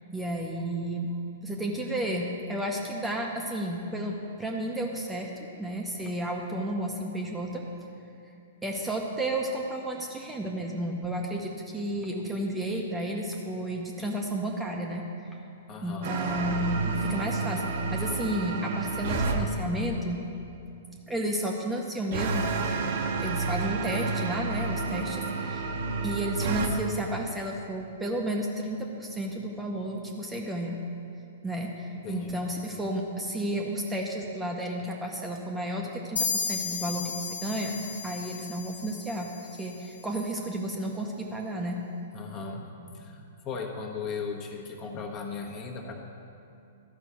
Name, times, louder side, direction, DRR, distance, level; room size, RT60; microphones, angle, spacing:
voice 1, 0.1-1.1 1.4-5.3 5.6-7.6 8.6-15.4 15.8-17.6 17.9-20.2 21.1-22.6 23.2-25.7 26.0-30.8 31.4-41.8, right 1 dB, 10° right, 0 dB, 0.9 m, -32 dB
voice 2, 15.7-16.1 32.0-32.4 42.1-46.0, left 5 dB, 35° left, 1 dB, 1.3 m, -37 dB
sound 1, 16.0-19.4 22.1-26.7, right 4 dB, 55° right, 1.0 m, -30 dB
sound 2, 36.2-39.7, left 5 dB, 80° left, 1.5 m, -34 dB
12.5 x 5.6 x 6.1 m, 2.6 s
figure-of-eight pair, 110°, 0 cm